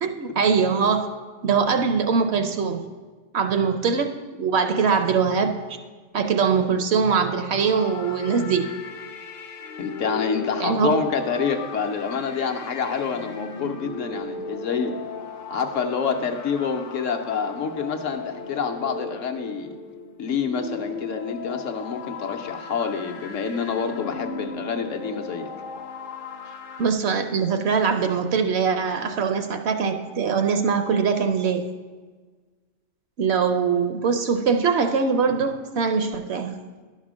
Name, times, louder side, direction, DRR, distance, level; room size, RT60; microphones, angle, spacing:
voice 1, 0.0-1.1 1.4-2.8 3.3-4.1 4.4-5.5 6.1-8.7 10.6-11.0 26.8-31.6 33.2-36.5, right 5 dB, 65° right, 7 dB, 0.8 m, -22 dB
sound 1, 7.6-26.9, left 4 dB, 55° left, 0.6 m, -37 dB
voice 2, 9.8-14.9 15.5-19.7 20.2-25.5 26.5-26.6, left 6 dB, 75° left, 5 dB, 1.1 m, -27 dB
11.0 x 4.4 x 6.1 m, 1.4 s
omnidirectional pair, 1.3 m